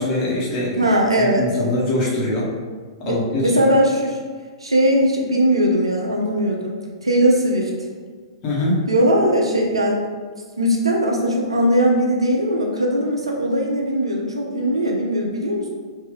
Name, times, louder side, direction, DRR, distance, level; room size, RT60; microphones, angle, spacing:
voice 1, 0.0-0.9 1.2-2.5 3.0-3.7 8.4-8.8, left 1 dB, 35° left, -5 dB, 1.2 m, -23 dB
voice 2, 0.8-1.5 3.0-4.2 4.6-6.8 7.0-7.7 8.9-10.0 10.6-15.7, equal, 90° right, 0 dB, 0.7 m, -19 dB
3.3 x 2.7 x 3.4 m, 1.5 s
hypercardioid pair, 110°, 3 cm